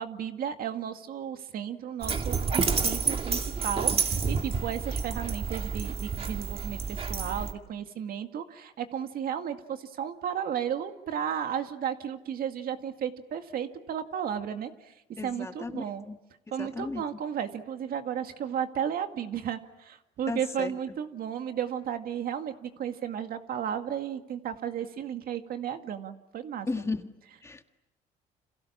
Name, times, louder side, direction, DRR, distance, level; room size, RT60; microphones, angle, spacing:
voice 1, 0.0-16.1 16.5-26.7, right 9 dB, 60° right, 7 dB, 2.0 m, -34 dB
Dog, 2.0-7.5, right 5 dB, 35° right, 2.2 m, -29 dB
voice 2, 15.2-16.2 16.6-17.0 20.3-20.8 26.7-27.1 27.4-27.6, left 3 dB, 15° left, 6 dB, 1.8 m, -34 dB
30.0 x 27.0 x 7.3 m, 0.92 s
cardioid pair, 110°, 17 cm